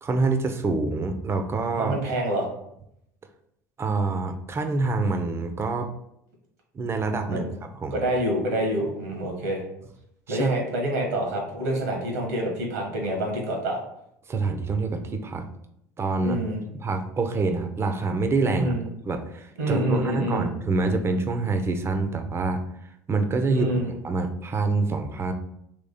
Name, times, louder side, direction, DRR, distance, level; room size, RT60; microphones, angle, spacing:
voice 1, 0.0-1.9 3.8-5.9 6.7-7.5 7.8-8.0 10.3-10.6 14.3-15.4 16.0-16.4 16.8-18.7 19.1-22.6 23.1-25.3, right 3 dB, 30° right, 7 dB, 0.7 m, -26 dB
voice 2, 1.8-2.5 7.3-7.5 7.9-9.6 10.3-13.8 16.2-16.6 18.5-18.8 19.6-20.5 23.5-23.9, right 1 dB, 90° right, 0 dB, 1.4 m, -27 dB
3.6 x 3.1 x 4.2 m, 0.77 s
hypercardioid pair, 75°, 9 cm